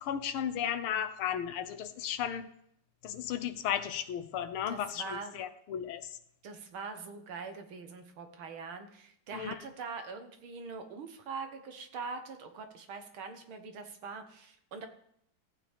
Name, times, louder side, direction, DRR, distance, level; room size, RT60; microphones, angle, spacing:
voice 1, 0.0-2.5 3.0-6.1 9.3-9.5, left 9 dB, 85° left, 11 dB, 1.7 m, -34 dB
voice 2, 4.7-5.3 6.4-14.9, right 4 dB, 75° right, 6 dB, 2.0 m, -43 dB
14.5 x 9.0 x 3.5 m, 0.70 s
omnidirectional pair, 2.3 m